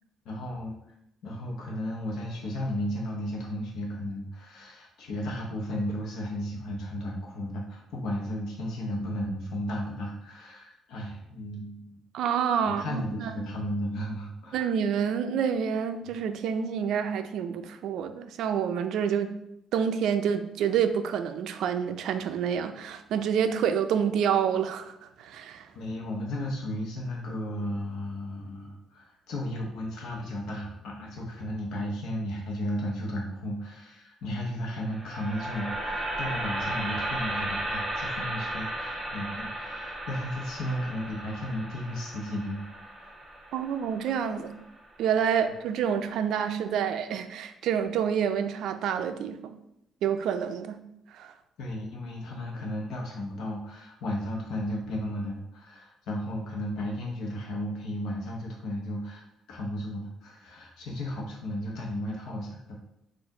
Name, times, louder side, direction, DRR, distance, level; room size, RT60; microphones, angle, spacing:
voice 1, 0.2-0.8 1.2-12.0 12.6-14.7 16.0-16.1 25.7-43.1 51.6-59.2 59.5-62.8, equal, 65° left, -2 dB, 0.9 m, -34 dB
voice 2, 12.1-13.4 14.5-19.3 19.7-25.7 43.5-44.5 45.0-49.5 50.0-50.8 51.1-51.3, right 8 dB, 65° right, 9 dB, 0.4 m, -28 dB
sound 1, 34.9-45.0, right 1 dB, ahead, 1.0 m, -35 dB
4.5 x 2.5 x 4.8 m, 0.79 s
cardioid pair, 160°, 0 cm